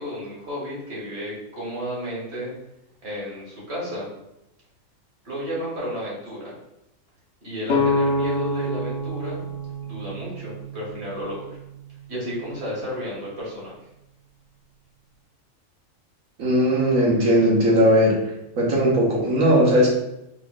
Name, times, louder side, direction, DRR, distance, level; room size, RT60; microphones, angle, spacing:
voice 1, 0.0-2.5 3.0-4.1 5.2-6.6 7.4-9.4 9.8-11.6 12.1-13.7, equal, 55° right, -6 dB, 1.9 m, -32 dB
sound 1, 7.7-11.5, left 2 dB, 65° left, 0.9 m, -26 dB
voice 2, 16.4-18.2 18.6-19.9, equal, 90° right, -3 dB, 1.5 m, -18 dB
4.4 x 3.8 x 2.3 m, 0.86 s
omnidirectional pair, 1.4 m